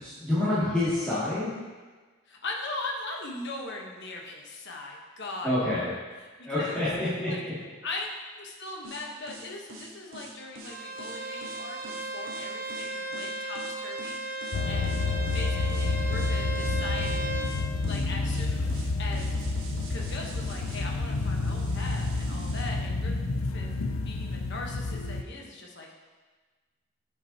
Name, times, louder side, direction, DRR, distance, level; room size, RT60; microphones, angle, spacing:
voice 1, 0.0-1.5 5.4-5.9 6.5-7.3, left 1 dB, 5° left, -16 dB, 2.3 m, -27 dB
voice 2, 2.3-6.9 7.3-7.4 7.8-15.1 15.3-17.6 17.8-19.4 19.9-23.1 23.5-23.7 24.0-26.0, left 2 dB, 60° left, 0 dB, 1.1 m, -40 dB
sound 1, 8.8-22.7, right 1 dB, 90° right, 1.2 m, -45 dB
Bowed string instrument, 10.6-17.6, right 2 dB, 45° right, 0.8 m, -36 dB
sound 2, 14.5-25.2, left 3 dB, 80° left, 0.5 m, -29 dB
10.5 x 5.9 x 2.8 m, 1.4 s
head